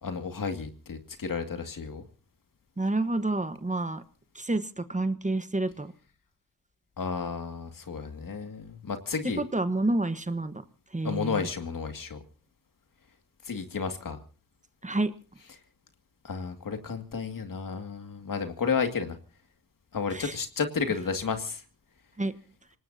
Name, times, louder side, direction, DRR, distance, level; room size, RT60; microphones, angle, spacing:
voice 1, 0.0-2.0 7.0-9.4 11.0-12.2 13.5-14.2 16.2-19.2 19.9-21.6, left 5 dB, 70° left, 6 dB, 2.3 m, -32 dB
voice 2, 2.8-4.0 4.3-5.9 9.4-10.5 10.9-11.5 14.8-15.1 20.1-20.3 22.2-22.3, right 2 dB, 20° right, 11 dB, 1.2 m, -29 dB
26.5 x 18.5 x 2.8 m, 0.38 s
cardioid pair, 70°, 34 cm